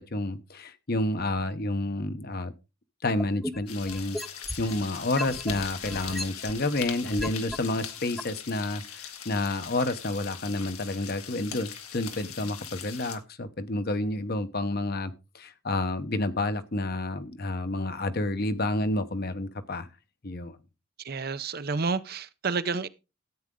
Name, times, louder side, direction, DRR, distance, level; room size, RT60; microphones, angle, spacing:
voice 1, 0.0-2.5 3.0-19.9 20.2-20.6, left 2 dB, 45° left, 0.9 m, -30 dB
sound 1, 3.2-4.8 5.2-7.6 8.2-8.3, equal, ahead, 0.6 m, -35 dB
sound 2, 3.7-13.2, left 8 dB, 90° left, 1.8 m, -41 dB
voice 2, 21.0-22.9, right 4 dB, 45° right, 0.6 m, -30 dB
13.5 x 8.8 x 3.8 m
head